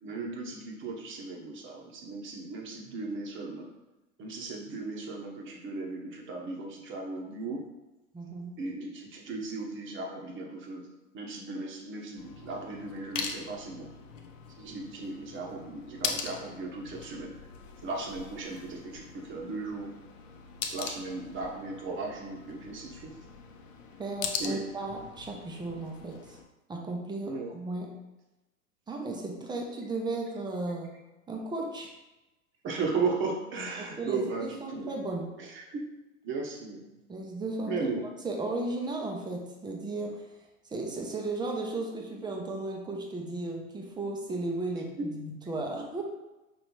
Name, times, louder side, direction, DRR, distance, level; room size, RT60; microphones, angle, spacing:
voice 1, 0.0-3.7 4.2-7.6 8.6-10.9 11.1-13.9 14.6-17.3 17.8-19.9 20.7-23.1 24.4-24.7 27.2-27.5 32.6-34.9 35.4-35.8 36.2-36.8 37.7-38.0 45.0-45.1, right 3 dB, 30° right, 0 dB, 1.0 m, -36 dB
voice 2, 8.1-8.6 24.0-26.4 26.7-28.0 28.9-30.9 31.3-31.9 33.8-35.3 37.1-37.7 38.0-40.3 40.6-46.0, right 2 dB, 10° right, 1 dB, 0.7 m, -35 dB
sound 1, 12.2-26.4, left 6 dB, 60° left, 0.8 m, -41 dB
5.4 x 3.0 x 3.1 m, 1.0 s
hypercardioid pair, 105°, 42 cm